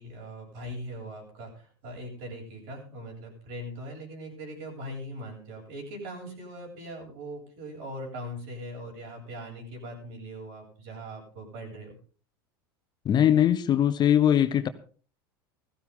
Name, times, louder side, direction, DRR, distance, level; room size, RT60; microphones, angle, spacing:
voice 1, 0.0-12.0, equal, 70° right, 7.9 m, -40 dB
voice 2, 13.0-14.7, left 10 dB, 35° left, 1.1 m, -21 dB
16.0 x 14.5 x 3.9 m
hypercardioid pair, 95°, 12 cm